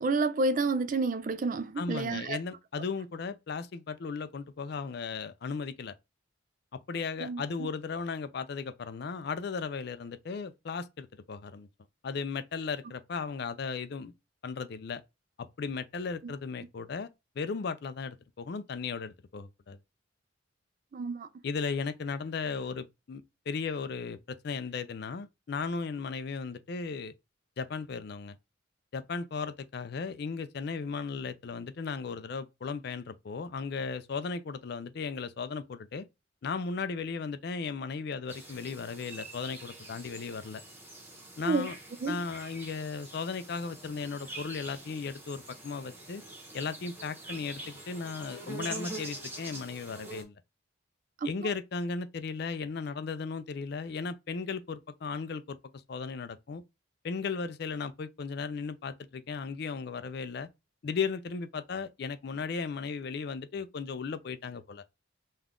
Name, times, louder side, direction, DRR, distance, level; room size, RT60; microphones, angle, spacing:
voice 1, 0.0-2.4 7.2-7.7 16.2-16.3 20.9-21.3 41.4-41.7 42.0-42.3 51.2-51.5, right 3 dB, 40° right, 0.3 m, -30 dB
voice 2, 1.8-5.9 6.9-11.7 12.0-14.1 14.4-15.0 15.4-17.1 17.4-19.8 21.4-27.1 27.6-28.4 28.9-36.0 36.4-40.6 41.4-41.7 42.1-46.2 46.5-50.4 51.2-55.6 55.9-56.6 57.0-60.5 60.8-64.8, left 5 dB, 55° left, 0.4 m, -36 dB
sound 1, 38.3-50.2, right 2 dB, 10° right, 1.0 m, -45 dB
5.3 x 2.3 x 3.6 m
head